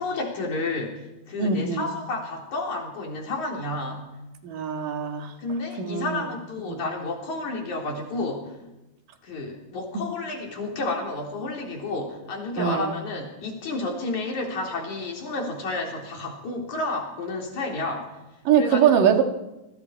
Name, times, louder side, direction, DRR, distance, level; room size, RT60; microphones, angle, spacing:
voice 1, 0.0-4.1 5.4-8.6 9.2-18.2 18.6-18.8, left 2 dB, 65° left, 0 dB, 5.0 m, -31 dB
voice 2, 1.4-1.8 4.4-5.3 5.8-6.2 6.7-6.9 12.6-12.9 18.5-19.2, right 7 dB, 85° right, 4 dB, 3.5 m, -22 dB
26.5 x 23.5 x 4.7 m, 1.0 s
omnidirectional pair, 3.7 m